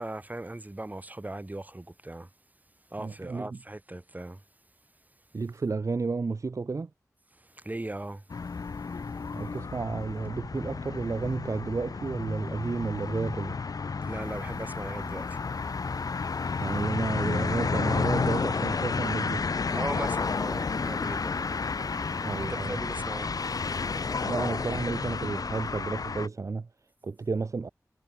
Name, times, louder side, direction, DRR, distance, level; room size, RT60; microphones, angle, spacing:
voice 1, 0.0-2.3 2.9-4.4 7.3-8.3 14.0-15.4 19.6-21.5 22.4-23.3, right 2 dB, 25° right, 3.3 m, -38 dB
voice 2, 3.0-3.6 5.3-6.9 9.3-13.6 16.6-19.4 22.2-22.8 24.3-26.7 27.0-27.7, right 4 dB, 60° right, 0.6 m, -32 dB
sound 1, 8.3-26.3, left 4 dB, 85° left, 1.1 m, -31 dB
wide cardioid pair, 80°, 6 cm